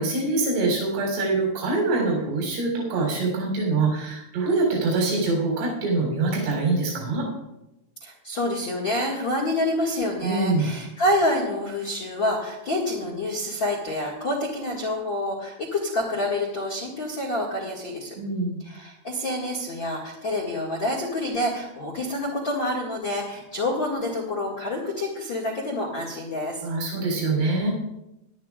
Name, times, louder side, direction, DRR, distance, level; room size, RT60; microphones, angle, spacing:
voice 1, 0.0-7.3 10.2-10.7 18.2-18.6 26.6-27.7, right 3 dB, 75° right, -2 dB, 6.0 m, -24 dB
voice 2, 8.0-18.1 18.6-26.6, left 1 dB, 55° left, -2 dB, 1.3 m, -27 dB
20.0 x 12.0 x 2.4 m, 0.93 s
omnidirectional pair, 5.6 m